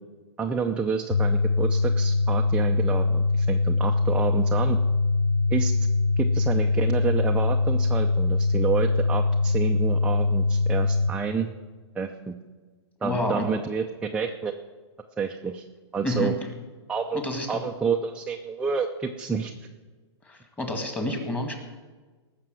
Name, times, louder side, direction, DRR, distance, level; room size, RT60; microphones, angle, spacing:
voice 1, 0.4-4.8 5.5-5.7 6.2-11.5 11.9-12.3 13.0-14.5 15.2-15.6 15.9-16.3 16.9-17.2 17.5-19.5, right 5 dB, 5° right, 2 dB, 0.6 m, -29 dB
sound 1, 1.1-11.1, left 3 dB, 45° left, 0.9 m, -23 dB
voice 2, 13.0-13.5 16.0-16.3 17.1-17.6 20.2-21.5, left 1 dB, 10° left, 4 dB, 2.0 m, -29 dB
18.5 x 6.7 x 7.7 m, 1.3 s
hypercardioid pair, 145°, 15 cm